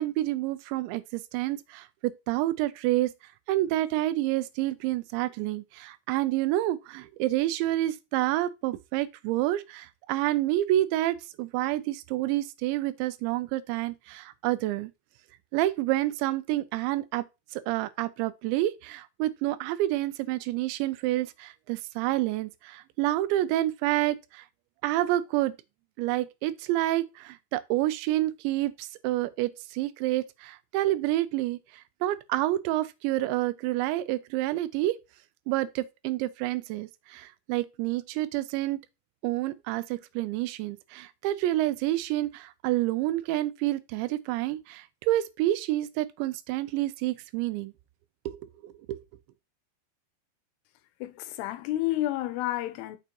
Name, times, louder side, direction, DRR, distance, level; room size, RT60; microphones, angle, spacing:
voice 1, 0.0-3.1 3.5-14.9 15.5-17.2 17.5-24.5 24.8-25.5 26.0-35.0 35.5-38.8 39.2-47.7 48.3-48.4 48.6-49.0, right 15 dB, 85° right, 2.8 m, -28 dB
voice 2, 51.0-53.0, left 15 dB, 80° left, 2.5 m, -30 dB
6.8 x 6.1 x 3.0 m
omnidirectional pair, 5.3 m